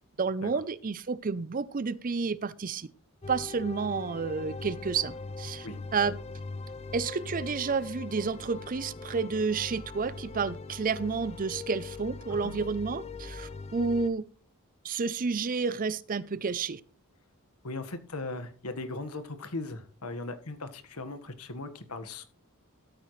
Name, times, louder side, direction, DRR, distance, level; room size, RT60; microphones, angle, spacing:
voice 1, 0.2-2.9 3.3-5.7 5.9-6.2 6.9-14.2 14.8-16.8, right 5 dB, 40° right, 0.5 m, -30 dB
sound 1, 3.2-14.1, left 3 dB, 30° left, 0.6 m, -41 dB
voice 2, 17.6-22.2, left 2 dB, 85° left, 1.6 m, -38 dB
13.5 x 8.8 x 3.2 m
head